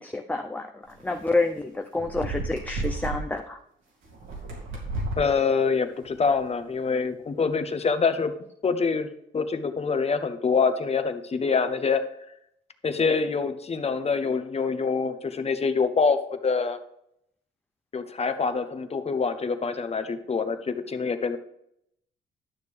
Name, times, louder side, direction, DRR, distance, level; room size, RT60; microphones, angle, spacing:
voice 1, 0.0-3.6, left 2 dB, 10° left, 4 dB, 0.6 m, -28 dB
sound 1, 1.0-1.2 2.0-3.2 4.0-5.3 6.0-6.4, right 2 dB, 85° right, 2.8 m, -32 dB
voice 2, 5.2-8.3 8.6-9.1 9.3-12.0 12.8-16.8 17.9-21.4, left 5 dB, 30° left, 9 dB, 0.9 m, -25 dB
11.5 x 6.5 x 3.4 m, 0.75 s
cardioid pair, 90°, 20 cm